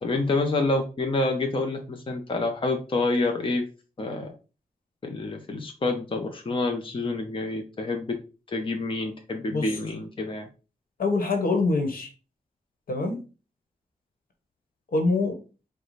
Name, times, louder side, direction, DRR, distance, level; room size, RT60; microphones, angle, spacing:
voice 1, 0.0-3.6 4.0-4.3 5.0-8.2 8.5-10.5, left 2 dB, 35° left, 3 dB, 0.8 m, -27 dB
voice 2, 11.0-12.1 12.9-13.2 14.9-15.4, left 3 dB, 75° left, 4 dB, 1.2 m, -25 dB
4.8 x 2.3 x 4.0 m, 0.33 s
cardioid pair, 85°, 15 cm